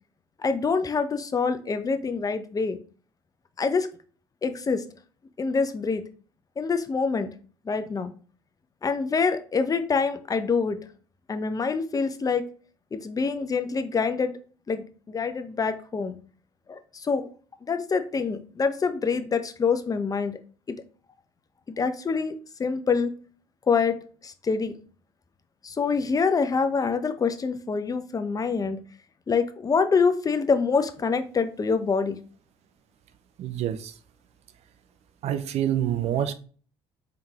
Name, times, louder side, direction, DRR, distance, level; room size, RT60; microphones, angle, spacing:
voice 1, 0.4-2.8 3.6-3.9 4.4-4.8 5.4-6.0 6.6-7.3 7.7-8.1 8.8-10.8 11.3-12.5 12.9-14.3 14.7-16.2 16.7-17.3 17.6-20.4 20.7-20.8 21.8-22.3 22.6-23.1 23.7-24.0 24.2-24.7 25.6-28.8 29.3-32.2, left 5 dB, 30° left, 0.6 m, -25 dB
voice 2, 33.4-33.9 35.2-36.3, right 11 dB, 55° right, 0.5 m, -26 dB
3.6 x 3.5 x 2.9 m
hypercardioid pair, 60°, 13 cm